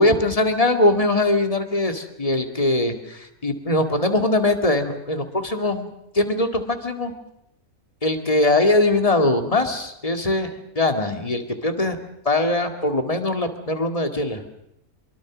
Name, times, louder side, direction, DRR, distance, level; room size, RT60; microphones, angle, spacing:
voice 1, 0.0-5.9 6.1-7.1 8.0-12.0 12.3-14.4, left 2 dB, 25° left, 6 dB, 2.2 m, -21 dB
25.0 x 23.5 x 6.2 m, 0.79 s
omnidirectional pair, 1.5 m